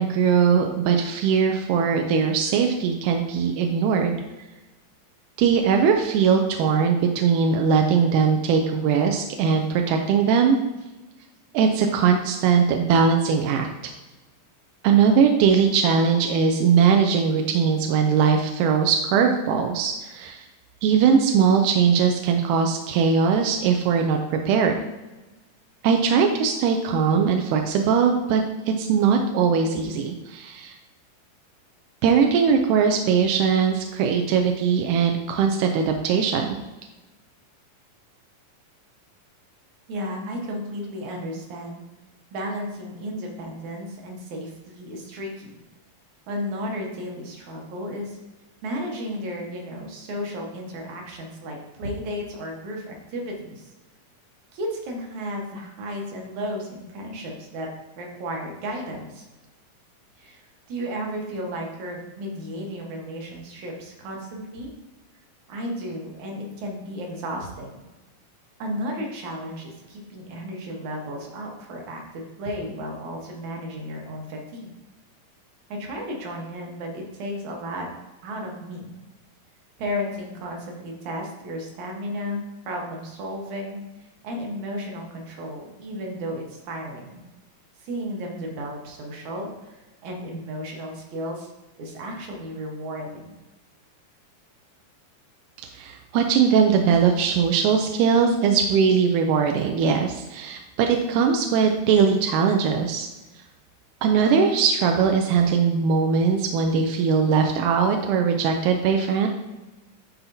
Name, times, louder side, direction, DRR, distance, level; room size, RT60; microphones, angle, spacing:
voice 1, 0.0-4.2 5.4-10.6 11.5-13.7 14.8-20.4 20.8-24.8 25.8-30.8 32.0-36.6 95.7-103.1 104.0-109.3, right 6 dB, 80° right, 4 dB, 1.8 m, -20 dB
voice 2, 39.9-41.8 42.3-45.5 46.3-48.2 48.6-53.7 54.5-57.7 58.0-59.2 60.2-64.7 65.5-67.8 68.6-74.7 75.7-77.9 78.2-78.9 79.8-83.8 84.2-87.2 87.8-91.5 91.8-93.3, equal, 65° right, 0 dB, 2.4 m, -33 dB
11.5 x 4.2 x 2.7 m, 1.1 s
omnidirectional pair, 4.0 m